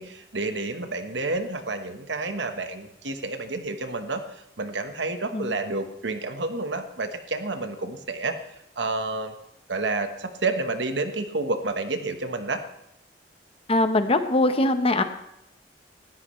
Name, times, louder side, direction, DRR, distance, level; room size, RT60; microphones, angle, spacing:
voice 1, 0.0-8.4 8.8-9.3 9.7-12.6, right 3 dB, 90° right, 7 dB, 1.3 m, -29 dB
voice 2, 13.7-15.0, left 2 dB, 35° left, 8 dB, 1.0 m, -21 dB
19.0 x 13.0 x 3.2 m, 0.82 s
head